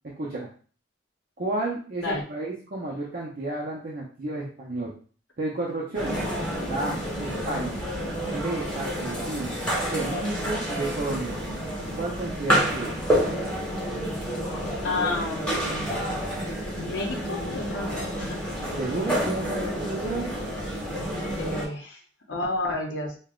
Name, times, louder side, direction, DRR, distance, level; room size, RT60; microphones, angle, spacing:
voice 1, 0.2-0.5 1.4-4.9 5.4-6.2 6.6-7.8 8.3-9.6 9.9-11.4 12.0-12.9 18.8-20.3, right 2 dB, 50° right, -5 dB, 0.7 m, -31 dB
sound 1, 5.9-21.7, equal, 5° left, 1.3 m, -29 dB
voice 2, 14.8-15.9 16.8-18.4 21.4-22.0 22.3-23.1, left 2 dB, 80° left, 0 dB, 0.8 m, -31 dB
5.4 x 2.2 x 2.4 m, 0.40 s
head